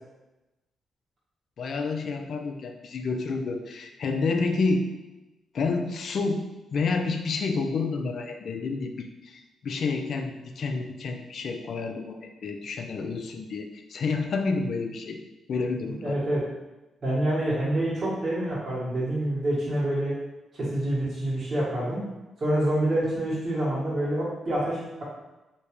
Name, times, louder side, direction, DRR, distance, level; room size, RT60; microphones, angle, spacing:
voice 1, 1.6-4.9 5.5-6.4 6.7-15.2 15.5-16.2, left 4 dB, 65° left, 4 dB, 0.4 m, -29 dB
voice 2, 15.8-16.4 17.0-20.1 20.6-22.0 22.4-25.0, right 1 dB, 50° right, -9 dB, 1.5 m, -27 dB
3.3 x 2.8 x 3.0 m, 1.0 s
cardioid pair, 75°, 0 cm